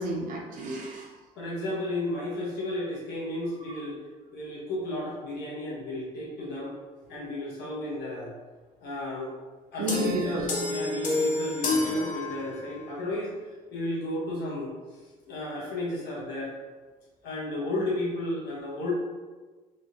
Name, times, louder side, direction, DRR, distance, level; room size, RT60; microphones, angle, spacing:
voice 1, 0.0-1.2 3.7-3.8 9.8-10.5, right 1 dB, 55° right, -1 dB, 0.6 m, -31 dB
voice 2, 1.4-4.0 4.3-6.7 7.1-8.3 8.8-9.3 9.7-15.0 15.3-16.5 17.2-18.9, left 1 dB, 75° left, -5 dB, 1.1 m, -33 dB
sound 1, 9.9-12.9, left 2 dB, 50° left, 0.7 m, -29 dB
3.5 x 2.4 x 2.8 m, 1.3 s
cardioid pair, 110°, 17 cm